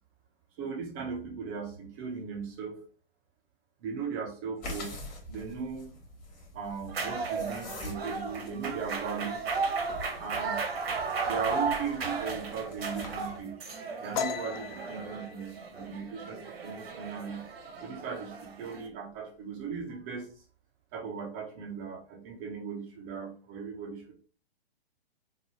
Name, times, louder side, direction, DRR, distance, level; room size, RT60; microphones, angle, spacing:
voice 1, 0.6-2.8 3.8-5.0 5.3-5.9 6.5-9.4 10.1-10.6 11.3-13.6 14.0-17.4 17.8-20.4 20.9-24.1, right 6 dB, 15° right, 1 dB, 0.3 m, -38 dB
sound 1, 4.6-13.4, left 1 dB, 25° left, 0.9 m, -45 dB
sound 2, 6.9-18.9, right 4 dB, 75° right, 0.7 m, -35 dB
sound 3, 14.1-17.6 17.9-18.2 18.6-19.1 19.4-20.2, left 7 dB, 55° left, 0.4 m, -38 dB
3.0 x 2.2 x 2.6 m, 0.41 s
figure-of-eight pair, 120°, 30 cm